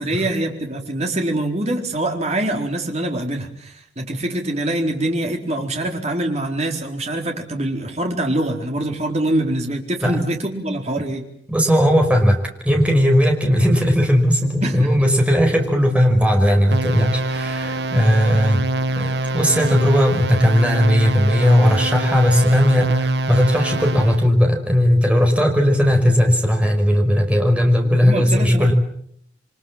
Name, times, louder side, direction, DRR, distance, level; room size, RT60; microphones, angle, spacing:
voice 1, 0.0-11.2 14.6-14.9 27.8-28.7, right 1 dB, 40° right, 2 dB, 4.3 m, -24 dB
voice 2, 11.5-18.6 19.0-28.7, equal, 5° right, 3 dB, 5.4 m, -17 dB
sound 1, 16.7-24.3, right 2 dB, 70° right, 1.1 m, -24 dB
28.5 x 24.5 x 7.5 m, 0.70 s
head